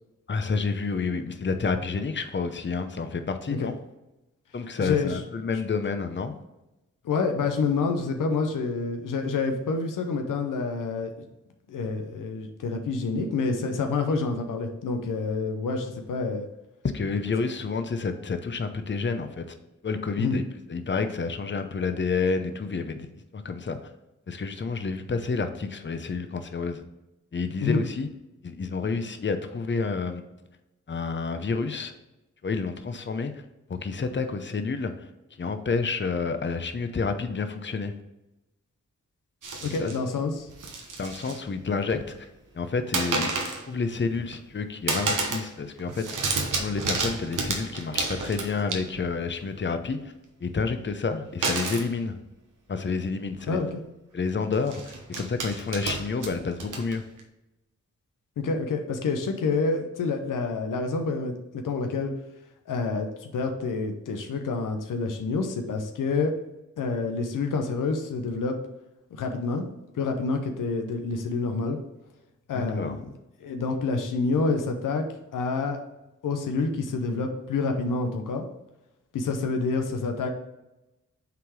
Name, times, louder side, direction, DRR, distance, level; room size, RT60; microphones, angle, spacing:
voice 1, 0.3-3.8 4.5-6.3 16.8-19.4 19.8-20.4 20.7-23.8 24.3-26.8 27.3-28.1 28.4-30.2 30.9-31.9 32.4-33.4 33.7-35.1 35.4-37.9 39.6-40.0 41.0-42.1 42.5-43.3 43.6-46.3 46.6-50.1 50.4-52.1 52.7-53.6 54.1-57.0 72.5-73.0, left 4 dB, 35° left, 8 dB, 0.7 m, -29 dB
voice 2, 4.8-5.2 7.0-11.3 11.7-16.5 20.2-20.4 27.6-27.8 39.6-40.5 53.5-53.8 58.4-62.1 62.7-66.3 66.8-68.6 69.1-69.6 69.9-71.8 72.5-73.0 73.4-75.0 75.3-75.8 76.2-78.4 79.1-80.3, left 4 dB, 90° left, 5 dB, 0.7 m, -28 dB
sound 1, 39.4-40.0 40.5-41.4 41.7-42.3 42.9-43.7 44.1-44.6 44.9-45.5 45.8-49.2 51.4-51.9 52.9-53.0 53.3-53.5 54.5-57.2, right 3 dB, 80° right, 1.0 m, -31 dB
5.8 x 3.7 x 4.8 m, 0.95 s
cardioid pair, 45°, 31 cm